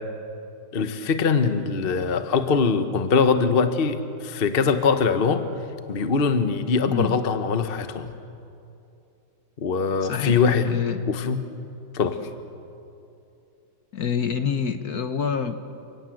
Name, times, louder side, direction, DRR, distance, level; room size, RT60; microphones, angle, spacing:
voice 1, 0.7-5.4 5.9-8.1 9.6-11.4 11.9-12.3, left 5 dB, 40° left, 9 dB, 0.9 m, -22 dB
voice 2, 10.0-11.1 13.9-15.6, left 7 dB, 55° left, 9 dB, 1.3 m, -27 dB
30.0 x 18.5 x 7.8 m, 2.7 s
omnidirectional pair, 2.3 m